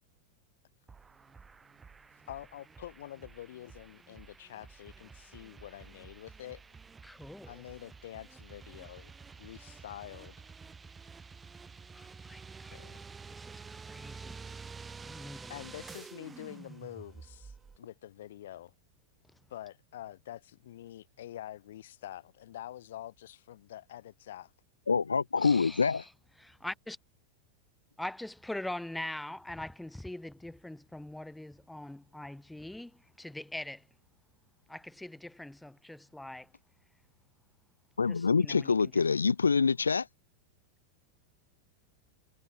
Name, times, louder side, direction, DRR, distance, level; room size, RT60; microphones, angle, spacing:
sound 1, 0.9-17.8, right 5 dB, 15° right, 2.7 m, -50 dB
voice 1, 2.3-6.6 7.5-9.1 9.4-10.3 12.7-13.0 15.5-18.7 19.5-24.5, left 13 dB, 60° left, 3.2 m, -46 dB
voice 2, 7.0-7.6 11.9-12.8 13.3-14.4 15.0-15.6 25.4-26.1 26.4-27.0 28.0-33.9 34.7-36.5 38.1-38.9, left 1 dB, 5° left, 2.6 m, -43 dB
voice 3, 24.9-26.0 38.0-40.1, left 5 dB, 75° left, 1.0 m, -26 dB
figure-of-eight pair, 90°, 0 cm